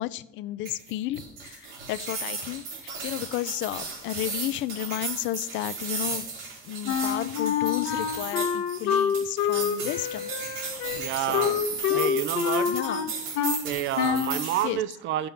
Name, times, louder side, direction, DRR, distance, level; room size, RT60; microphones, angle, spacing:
voice 1, 0.0-6.3 6.6-10.7 11.1-12.2 12.7-13.1 14.6-14.8, left 15 dB, 65° left, 16 dB, 0.5 m, -33 dB
sound 1, 0.6-14.7, right 4 dB, 85° right, 3.8 m, -35 dB
Wind instrument woodwind instrument, 6.9-13.6 14.0-14.4, left 8 dB, 85° left, 1.2 m, -27 dB
voice 2, 10.7-11.6 11.9-12.8 13.4-15.3, right 12 dB, 60° right, 15 dB, 0.6 m, -30 dB
13.5 x 6.9 x 5.5 m, 0.73 s
cardioid pair, 160°, 21 cm